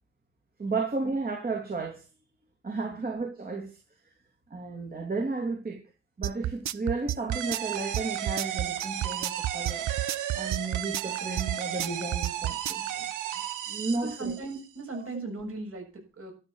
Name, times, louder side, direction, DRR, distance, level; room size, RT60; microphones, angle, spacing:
voice 1, 0.6-2.0 2.6-3.8 4.5-5.8 6.2-9.9 10.3-13.0 13.7-14.3 14.9-15.0, right 3 dB, 30° right, 3.1 m, -33 dB
sound 1, 6.2-12.9, right 13 dB, 65° right, 0.7 m, -31 dB
sound 2, 7.3-14.7, right 10 dB, 85° right, 1.6 m, -34 dB
voice 2, 13.9-16.3, right 3 dB, 50° right, 6.8 m, -38 dB
12.0 x 6.9 x 7.2 m
cardioid pair, 90°, 30 cm